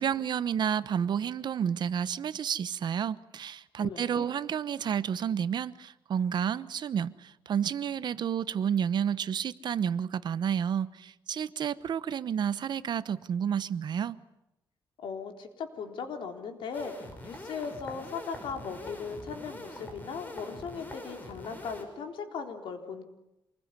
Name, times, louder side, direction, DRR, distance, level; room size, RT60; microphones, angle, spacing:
voice 1, 0.0-14.2, right 8 dB, 60° right, 1.0 m, -30 dB
voice 2, 3.8-4.3 15.0-23.0, left 6 dB, 85° left, 3.7 m, -38 dB
sound 1, 16.7-21.8, left 1 dB, 20° left, 5.5 m, -44 dB
27.5 x 21.0 x 9.8 m
cardioid pair, 130°, 8 cm